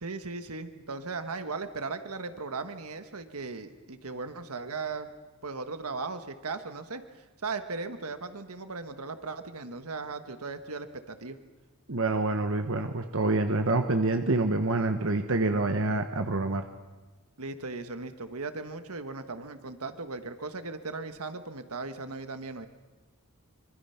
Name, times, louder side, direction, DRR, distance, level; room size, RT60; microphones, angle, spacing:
voice 1, 0.0-5.1 5.4-7.0 7.4-11.4 17.4-22.7, right 3 dB, 85° right, 9 dB, 1.4 m, -37 dB
voice 2, 11.9-16.6, right 2 dB, 65° right, 6 dB, 1.1 m, -27 dB
25.5 x 24.0 x 5.8 m, 1.2 s
head